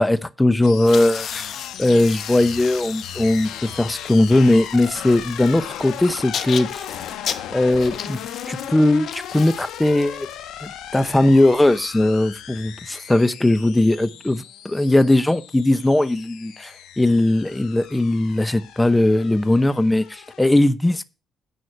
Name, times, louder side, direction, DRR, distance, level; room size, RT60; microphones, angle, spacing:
voice 1, 0.0-1.5 1.8-6.9 7.5-8.2 8.5-10.3 10.6-21.0, left 1 dB, 10° left, 0.8 m, -19 dB
sound 1, 0.6-20.5, left 10 dB, 90° left, 1.4 m, -37 dB
sound 2, 0.8-11.8, left 8 dB, 60° left, 1.0 m, -36 dB
9.6 x 6.2 x 8.0 m
cardioid pair, 90°, 0 cm